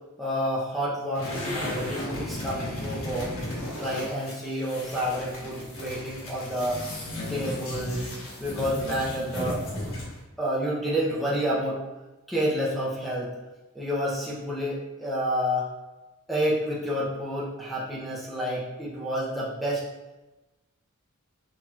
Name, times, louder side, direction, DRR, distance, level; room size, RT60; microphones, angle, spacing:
voice 1, 0.2-3.3 3.8-6.8 7.3-8.1 8.4-9.6 10.4-11.8 12.3-13.3 13.7-15.7 16.3-19.8, equal, ahead, -7 dB, 0.7 m, -29 dB
sound 1, 1.1-10.2, left 1 dB, 65° left, 1.4 m, -35 dB
5.9 x 2.9 x 2.4 m, 1.1 s
head